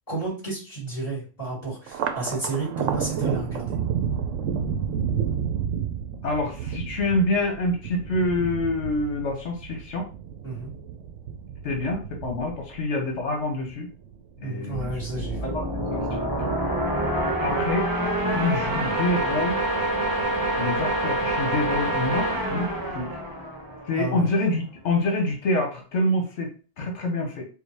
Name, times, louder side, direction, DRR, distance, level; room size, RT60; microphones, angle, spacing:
voice 1, 0.1-3.8 10.4-10.7 14.4-15.5 23.9-24.3, right 3 dB, 30° left, -8 dB, 2.5 m, -31 dB
Thunder, 1.9-14.5 14.9-15.7 16.1-16.9, right 7 dB, 90° right, 1.0 m, -31 dB
voice 2, 6.2-10.0 11.6-13.9 14.4-14.9 15.4-16.5 17.4-17.9 18.3-19.6 20.6-22.7 22.9-23.1 23.9-26.5 26.8-27.4, left 2 dB, 65° left, 2 dB, 1.1 m, -26 dB
sound 1, 14.7-24.2, right 1 dB, 20° right, 0.8 m, -26 dB
4.7 x 2.4 x 3.4 m, 0.37 s
omnidirectional pair, 1.3 m